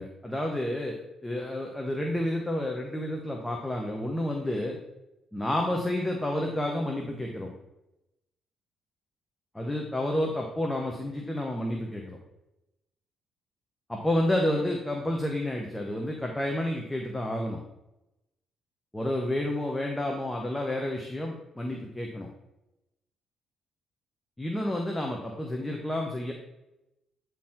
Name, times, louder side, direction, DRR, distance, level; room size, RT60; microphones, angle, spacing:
voice 1, 0.0-4.8 5.3-7.5 9.5-12.2 13.9-17.6 18.9-22.3 24.4-26.3, left 1 dB, 10° left, 0 dB, 1.1 m, -30 dB
9.1 x 4.5 x 3.7 m, 0.91 s
cardioid pair, 90°, 0 cm